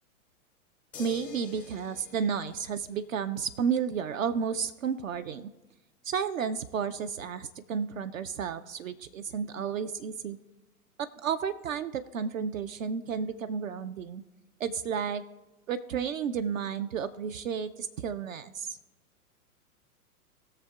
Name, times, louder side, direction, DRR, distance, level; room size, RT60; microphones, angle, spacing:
sound 1, 0.9-3.4 5.1-5.2, left 6 dB, 5° left, 0.3 m, -48 dB
voice 1, 1.0-5.5 6.0-10.4 11.0-14.2 14.6-15.2 15.7-18.8, right 7 dB, 60° right, 11 dB, 0.6 m, -32 dB
19.5 x 6.7 x 2.3 m, 1.1 s
figure-of-eight pair, 110°, 45 cm